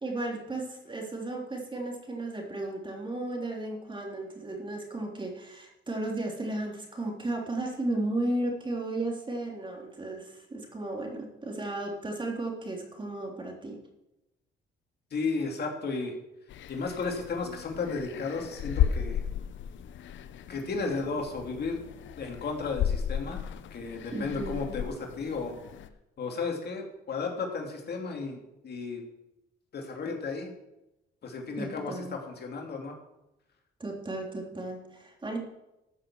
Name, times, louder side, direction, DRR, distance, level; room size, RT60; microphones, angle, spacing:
voice 1, 0.0-13.8 24.1-24.8 31.6-32.2 33.8-35.4, right 2 dB, 25° right, 1 dB, 3.3 m, -34 dB
voice 2, 15.1-16.1 16.7-19.2 20.5-21.8 22.2-23.4 23.7-25.5 26.2-29.0 29.7-30.5 31.2-32.9, left 4 dB, 55° left, 2 dB, 2.7 m, -34 dB
sound 1, 16.5-25.9, left 9 dB, 70° left, 0.8 m, -34 dB
13.5 x 7.0 x 7.3 m, 0.92 s
cardioid pair, 90°, 20 cm